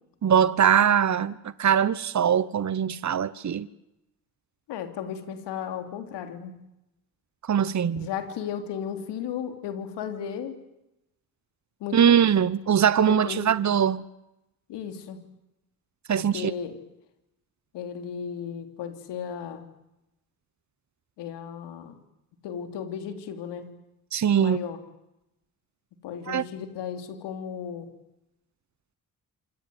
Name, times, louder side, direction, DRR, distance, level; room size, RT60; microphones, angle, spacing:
voice 1, 0.2-3.7 7.4-8.1 11.9-14.0 16.1-16.5 24.1-24.6 26.3-26.4, right 8 dB, 45° right, 1.2 m, -22 dB
voice 2, 4.7-6.6 7.9-10.6 11.8-12.3 13.1-13.7 14.7-15.3 16.2-16.8 17.7-19.7 21.2-22.0 22.4-23.7 24.4-24.8 26.0-27.9, left 8 dB, 85° left, 3.2 m, -35 dB
27.5 x 26.5 x 7.9 m
supercardioid pair, 50°, 41 cm